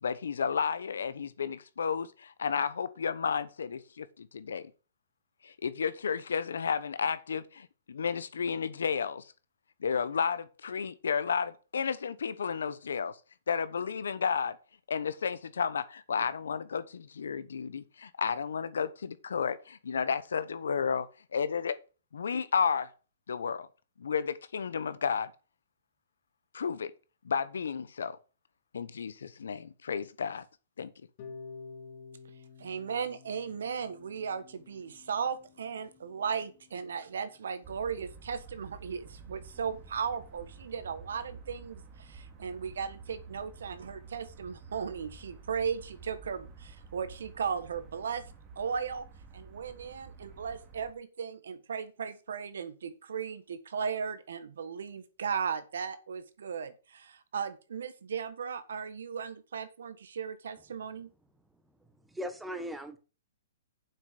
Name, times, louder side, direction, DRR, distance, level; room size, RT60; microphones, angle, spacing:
voice 1, 0.0-4.7 5.4-9.3 9.8-13.2 13.5-14.6 14.9-21.1 21.3-21.8 22.1-22.9 23.3-23.7 24.0-25.3 26.5-26.9 27.2-28.2 28.7-30.4 30.8-30.9, left 6 dB, 85° left, 1.0 m, -32 dB
Harp, 31.2-37.2, left 4 dB, 50° left, 1.8 m, -51 dB
voice 2, 32.6-48.2 48.5-49.0 49.3-61.1, right 6 dB, 80° right, 1.4 m, -36 dB
sound 1, 37.6-50.9, right 4 dB, 25° right, 2.3 m, -50 dB
voice 3, 61.8-63.0, equal, 5° right, 1.4 m, -39 dB
7.4 x 6.2 x 6.8 m
hypercardioid pair, 140°, 0 cm